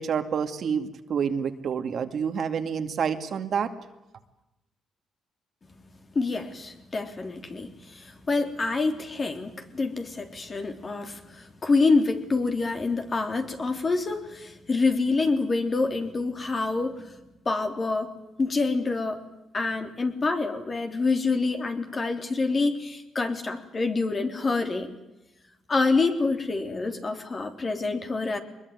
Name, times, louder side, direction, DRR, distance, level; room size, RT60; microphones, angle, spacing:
voice 1, 0.0-3.7, right 7 dB, 60° right, 7 dB, 2.4 m, -28 dB
voice 2, 6.2-17.1 17.5-18.1 18.4-19.2 19.5-24.9 25.7-28.4, left 3 dB, 35° left, 5 dB, 3.5 m, -27 dB
23.0 x 21.5 x 9.7 m, 0.95 s
cardioid pair, 90°, 0 cm